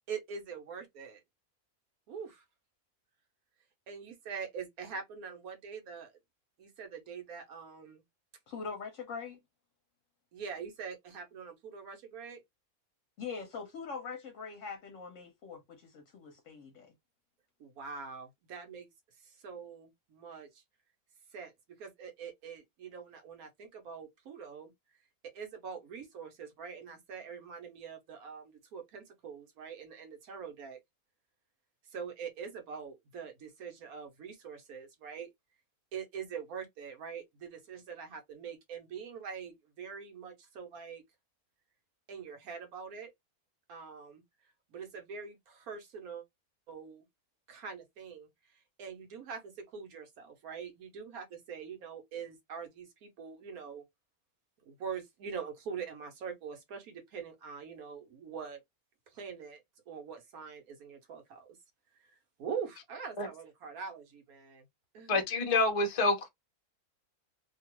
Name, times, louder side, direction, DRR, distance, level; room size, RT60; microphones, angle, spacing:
voice 1, 0.1-1.2 2.1-2.4 3.9-6.1 6.6-8.0 10.3-12.4 17.6-18.9 19.2-20.6 21.3-21.5 21.8-24.7 25.2-30.8 31.9-35.3 35.9-41.0 42.1-43.1 43.7-44.2 44.7-46.2 46.7-47.0 47.5-53.8 54.7-58.6 59.1-61.5 62.4-64.7 64.9-65.2, right 6 dB, 70° right, 1.3 m, -44 dB
voice 2, 8.5-9.4 13.2-16.9, left 5 dB, 65° left, 1.0 m, -42 dB
voice 3, 65.1-66.3, left 3 dB, 35° left, 0.6 m, -27 dB
2.9 x 2.4 x 3.0 m
omnidirectional pair, 1.6 m